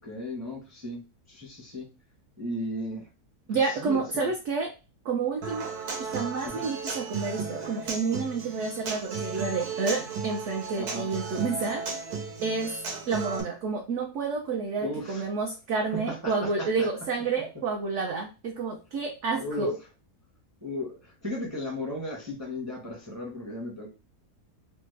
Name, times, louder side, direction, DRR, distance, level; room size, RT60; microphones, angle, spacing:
voice 1, 0.0-1.0 1.3-1.9 2.4-3.1 3.5-4.3 6.4-6.7 10.7-11.1 14.8-15.2 15.9-16.9 19.4-19.7 20.6-23.9, left 1 dB, 20° right, -2 dB, 0.6 m, -35 dB
voice 2, 3.5-4.7 5.0-5.7 6.0-11.8 12.4-12.7 13.1-19.8, right 4 dB, 65° right, 2 dB, 0.7 m, -29 dB
Human voice / Acoustic guitar, 5.4-13.4, right 4 dB, 85° right, 1.3 m, -35 dB
3.2 x 2.0 x 3.2 m, 0.30 s
omnidirectional pair, 1.6 m